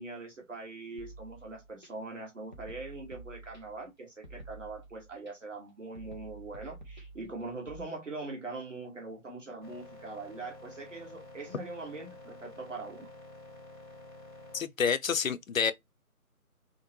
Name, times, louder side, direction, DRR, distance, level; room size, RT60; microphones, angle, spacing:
voice 1, 0.0-13.1, right 3 dB, 55° right, 1.3 m, -42 dB
sound 1, 1.0-1.9 2.5-3.9 4.2-5.3 6.0-7.8, right 2 dB, 35° right, 0.6 m, -49 dB
sound 2, 9.6-14.6, left 2 dB, 15° right, 1.2 m, -50 dB
voice 2, 14.5-15.7, left 6 dB, 65° left, 0.5 m, -28 dB
3.6 x 2.1 x 2.6 m
figure-of-eight pair, 170°, 44 cm